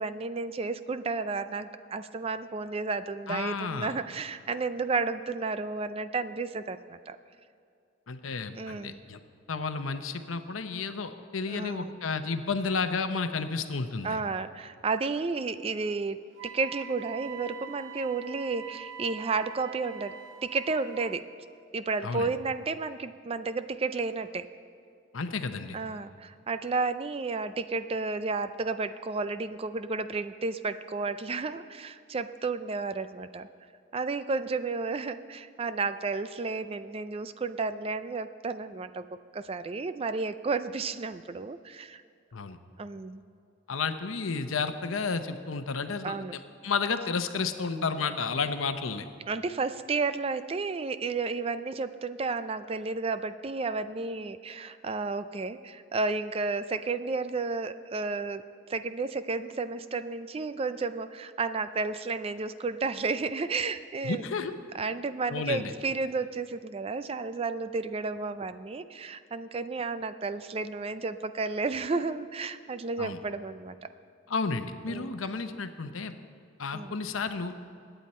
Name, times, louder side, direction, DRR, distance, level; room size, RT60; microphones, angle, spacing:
voice 1, 0.0-7.2 8.5-9.0 11.5-12.0 14.0-16.2 16.4-20.2 20.4-21.3 21.7-24.5 25.7-33.5 33.9-39.1 39.3-42.0 42.8-43.2 46.0-46.4 49.3-64.2 64.7-73.8 74.9-75.1 76.7-76.9, right 4 dB, 30° right, 12 dB, 0.4 m, -32 dB
voice 2, 3.3-3.9 8.1-9.2 9.5-14.2 22.0-22.3 25.1-25.8 42.3-42.6 43.7-49.1 64.0-64.5 65.3-65.7 73.0-73.2 74.3-76.1 76.6-77.5, left 4 dB, 85° left, 9 dB, 0.8 m, -32 dB
Wind instrument woodwind instrument, 16.4-21.2, right 9 dB, 70° right, 0.8 m, -44 dB
21.5 x 9.2 x 4.3 m, 2.5 s
head